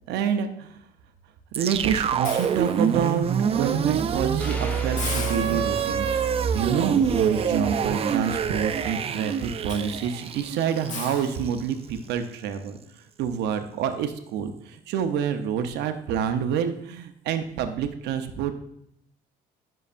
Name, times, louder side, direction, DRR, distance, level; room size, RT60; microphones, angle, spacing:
voice 1, 0.1-0.8 1.5-6.2 6.5-12.8 13.2-18.5, right 8 dB, 85° right, 7 dB, 0.7 m, -27 dB
sound 1, 1.5-11.7, right 7 dB, 35° right, 0.4 m, -26 dB
Hiss, 2.2-3.4 3.8-4.0 4.4-4.5 5.0-12.0, left 4 dB, 50° left, 1.3 m, -40 dB
sound 2, 4.4-6.4, left 1 dB, 10° left, 1.0 m, -39 dB
11.0 x 5.6 x 2.5 m, 0.71 s
cardioid pair, 110°, 17 cm